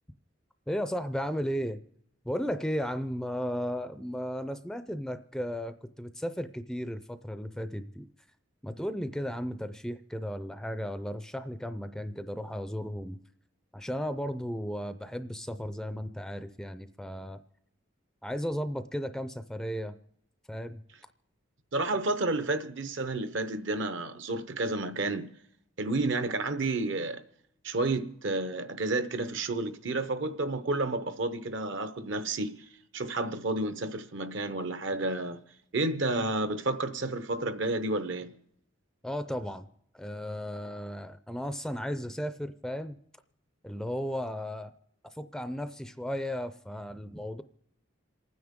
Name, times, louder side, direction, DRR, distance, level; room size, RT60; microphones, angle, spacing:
voice 1, 0.7-1.8 2.2-8.1 8.6-13.2 13.7-17.4 18.2-20.0 20.5-20.8 39.0-39.7 39.9-43.0 43.6-44.7 45.1-47.4, equal, 5° left, 0.4 m, -35 dB
voice 2, 21.7-25.3 25.8-27.2 27.6-32.6 32.9-35.4 35.7-38.3, right 2 dB, 60° right, 0.8 m, -31 dB
27.5 x 9.5 x 3.6 m
head